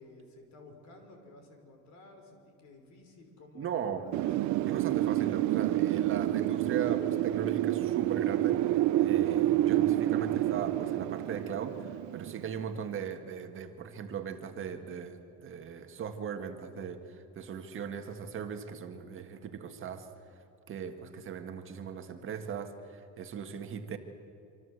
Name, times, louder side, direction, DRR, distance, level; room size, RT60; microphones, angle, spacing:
voice 1, 0.0-4.2, left 2 dB, 60° left, 4 dB, 5.7 m, -54 dB
voice 2, 3.6-4.1 4.7-20.1 20.7-24.0, right 7 dB, 40° right, 6 dB, 1.8 m, -38 dB
Wind, 4.1-12.8, right 14 dB, 70° right, 0.7 m, -28 dB
26.5 x 26.0 x 8.1 m, 2.8 s
cardioid pair, 160°, 31 cm